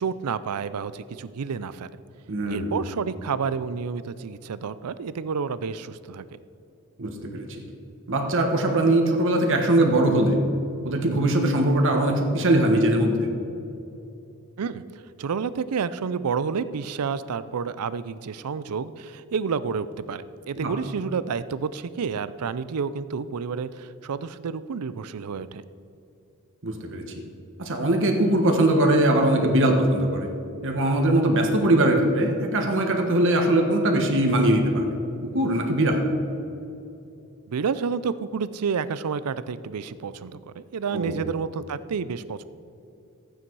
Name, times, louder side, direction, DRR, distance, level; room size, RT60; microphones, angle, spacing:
voice 1, 0.0-1.9 2.5-6.3 14.6-14.8 15.2-25.6 37.5-42.4, right 6 dB, 85° right, 15 dB, 0.5 m, -30 dB
voice 2, 2.3-2.7 7.0-7.5 8.1-10.4 10.8-13.3 20.6-20.7 26.6-27.0 27.6-30.3 30.6-34.9 35.3-36.0 40.9-41.1, right 1 dB, 60° right, 2 dB, 1.4 m, -21 dB
sound 1, 28.2-31.6, right 6 dB, 40° left, 2.2 m, -45 dB
14.0 x 9.1 x 4.7 m, 2.8 s
head